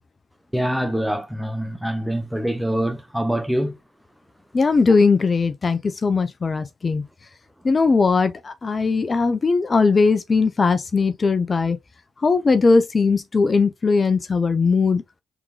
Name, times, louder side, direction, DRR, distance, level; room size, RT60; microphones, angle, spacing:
voice 1, 0.5-3.8, right 1 dB, 5° right, 0.9 m, -24 dB
voice 2, 4.5-7.0 7.6-11.8 12.2-15.0, left 4 dB, 40° left, 0.6 m, -19 dB
4.6 x 3.6 x 2.2 m
hypercardioid pair, 45°, 0 cm